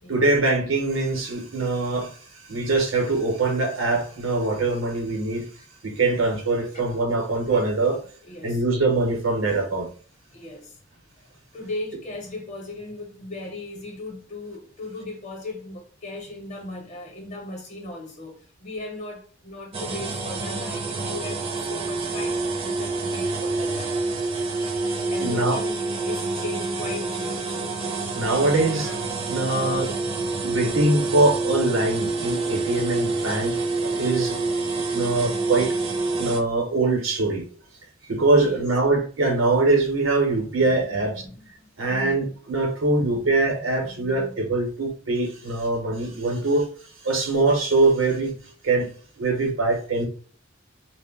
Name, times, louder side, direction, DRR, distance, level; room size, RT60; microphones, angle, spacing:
voice 1, 0.1-8.0 8.4-9.9 23.6-23.7 25.2-25.6 27.8-30.0 30.4-34.4 34.9-35.7 36.2-37.4 38.0-41.1 41.8-46.7 47.0-48.4 48.6-48.9 49.2-50.1, right 2 dB, 85° right, 0.8 m, -23 dB
voice 2, 8.2-8.6 10.3-10.8 11.5-24.0 25.1-27.6 38.4-38.7 40.3-42.2 43.0-44.5, left 2 dB, 35° left, 0.7 m, -38 dB
sound 1, 19.7-36.4, right 3 dB, 30° right, 0.4 m, -27 dB
2.1 x 2.0 x 3.5 m
head